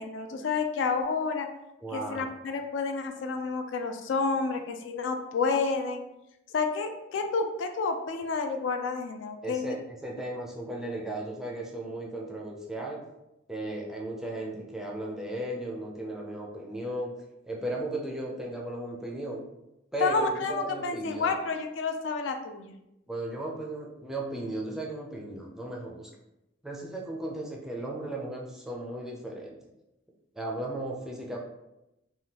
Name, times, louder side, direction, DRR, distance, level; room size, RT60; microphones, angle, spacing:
voice 1, 0.0-1.5 1.9-6.0 6.5-9.7 20.0-22.7, left 4 dB, 75° left, 6 dB, 0.3 m, -30 dB
voice 2, 1.8-2.4 9.4-13.0 13.5-17.1 17.4-19.4 19.9-21.4 23.1-26.1 26.6-29.6 30.3-31.4, right 1 dB, 5° right, -2 dB, 0.4 m, -36 dB
3.4 x 2.2 x 2.8 m, 0.91 s
head